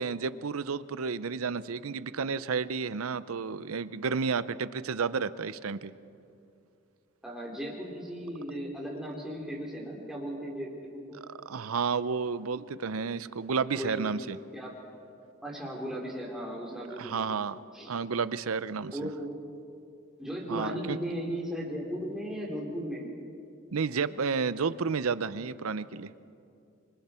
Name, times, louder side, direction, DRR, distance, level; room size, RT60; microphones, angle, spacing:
voice 1, 0.0-5.9 11.5-14.4 17.0-17.6 17.9-19.1 20.5-21.0 23.7-26.1, right 5 dB, 85° right, 16 dB, 0.6 m, -31 dB
voice 2, 7.2-11.2 13.8-14.1 14.5-14.7 15.4-17.2 17.7-17.9 18.9-19.3 20.2-23.1, equal, ahead, -3 dB, 3.5 m, -36 dB
26.5 x 24.0 x 4.4 m, 2.6 s
head